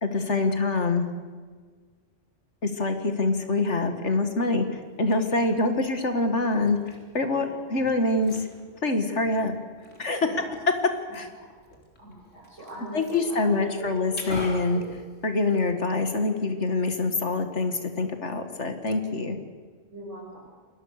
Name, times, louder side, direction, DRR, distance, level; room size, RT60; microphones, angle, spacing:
voice 1, 0.0-1.1 2.6-8.4 8.8-9.5 10.0-10.3 11.1-11.3 12.9-14.8 15.2-19.4, left 3 dB, 70° left, 6 dB, 2.2 m, -25 dB
Liquid, 4.8-15.8, left 1 dB, 90° left, 4.2 m, -45 dB
voice 2, 5.2-5.5 7.3-7.6 10.2-10.5 11.1-11.5 12.0-14.0 14.7-15.0 15.6-15.8 19.9-20.5, right 1 dB, 90° right, -7 dB, 6.7 m, -42 dB
29.0 x 21.5 x 6.7 m, 1.5 s
omnidirectional pair, 1.2 m